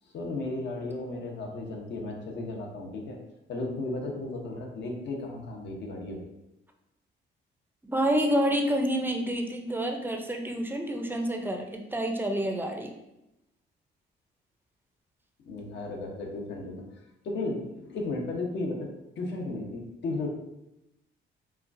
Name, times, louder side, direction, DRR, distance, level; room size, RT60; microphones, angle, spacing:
voice 1, 0.1-3.2 3.5-6.2 15.5-16.8 17.2-18.9 19.2-20.3, left 2 dB, 60° left, 0 dB, 1.0 m, -34 dB
voice 2, 7.8-12.9, equal, 10° right, 3 dB, 0.6 m, -28 dB
5.7 x 2.3 x 2.6 m, 0.88 s
cardioid pair, 90°, 20 cm